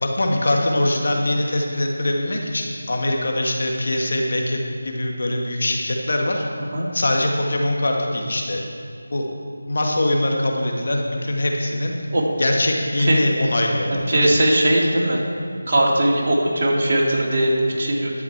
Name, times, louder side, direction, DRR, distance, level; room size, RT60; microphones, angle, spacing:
voice 1, 0.0-6.4 6.9-8.6 9.1-9.3 9.7-11.9 12.4-14.3, left 1 dB, 60° left, 1 dB, 1.6 m, -22 dB
voice 2, 14.1-15.2 15.7-18.1, right 1 dB, 45° right, -3 dB, 2.3 m, -19 dB
11.5 x 8.2 x 4.7 m, 2.5 s
figure-of-eight pair, 165°, 0 cm